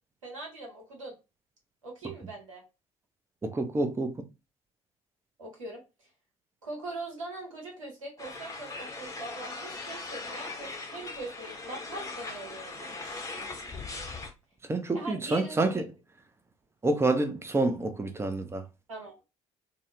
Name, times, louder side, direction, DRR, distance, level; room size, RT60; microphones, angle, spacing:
voice 1, 0.2-1.1 1.8-2.6 5.4-5.8 6.6-13.3 14.9-15.7 18.9-19.1, right 2 dB, 80° right, 0.8 m, -41 dB
voice 2, 3.4-4.1 14.7-15.8 16.8-18.6, right 2 dB, 15° right, 0.5 m, -28 dB
sound 1, 8.2-14.3, left 3 dB, 20° left, 0.8 m, -39 dB
2.7 x 2.0 x 2.5 m
figure-of-eight pair, 50°, 17 cm